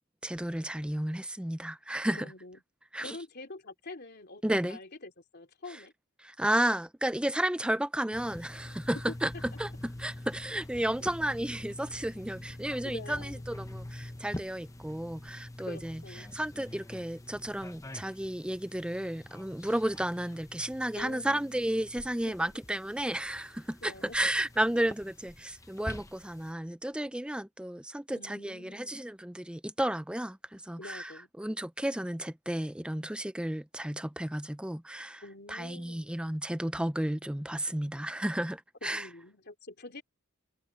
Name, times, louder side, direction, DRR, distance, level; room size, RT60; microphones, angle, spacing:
voice 1, 0.2-2.2 2.9-3.2 4.4-4.8 6.2-9.3 9.6-16.0 16.3-31.1 31.4-35.2 35.5-39.1, right 1 dB, 5° right, 0.5 m, -33 dB
voice 2, 2.1-2.6 3.0-5.9 9.1-9.4 12.8-13.4 15.7-16.3 21.0-21.6 22.2-22.6 23.8-24.2 28.1-28.9 30.8-31.3 35.2-36.2 38.8-40.0, left 2 dB, 50° left, 3.3 m, -46 dB
sound 1, 8.1-26.5, left 1 dB, 15° left, 0.9 m, -45 dB
head